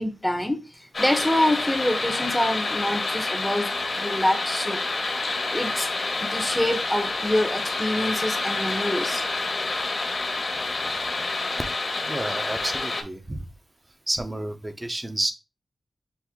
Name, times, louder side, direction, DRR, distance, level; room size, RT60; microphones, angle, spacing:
voice 1, 0.0-4.8 5.5-5.9 6.2-9.2, left 1 dB, 5° left, 0.8 m, -26 dB
sound 1, 0.9-13.0, left 3 dB, 60° left, 1.4 m, -28 dB
voice 2, 12.0-13.5 14.1-15.3, right 1 dB, 25° right, 0.7 m, -30 dB
6.0 x 2.1 x 3.5 m
cardioid pair, 65°, 0 cm